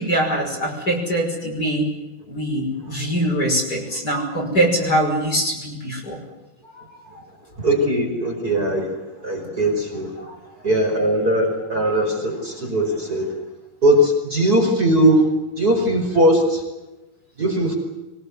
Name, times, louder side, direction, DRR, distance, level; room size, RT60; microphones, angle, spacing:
voice 1, 0.0-1.9 2.3-6.2 10.2-10.3 14.7-14.8, right 1 dB, 25° left, -1 dB, 6.1 m, -23 dB
voice 2, 7.6-8.9 9.2-10.1 10.6-13.3 13.8-15.3 15.6-16.6 17.4-17.8, right 1 dB, 25° right, 0 dB, 5.4 m, -19 dB
24.0 x 19.5 x 9.5 m, 1.0 s
omnidirectional pair, 3.7 m